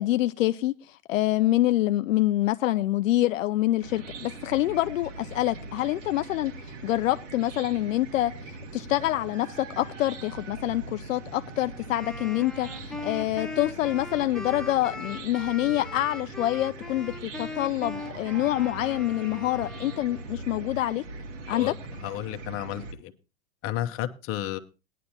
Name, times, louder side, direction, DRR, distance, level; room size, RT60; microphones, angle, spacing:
voice 1, 0.0-8.3 8.7-21.0 21.5-21.7, left 15 dB, 70° left, 0.6 m, -26 dB
Chicken rooster / Cricket, 3.8-22.9, right 3 dB, 65° right, 2.4 m, -41 dB
Wind instrument woodwind instrument, 11.9-20.3, left 3 dB, ahead, 0.8 m, -40 dB
voice 2, 22.0-23.1 23.6-24.6, left 12 dB, 35° left, 1.0 m, -32 dB
17.5 x 10.0 x 2.8 m
hypercardioid pair, 120°, 40 cm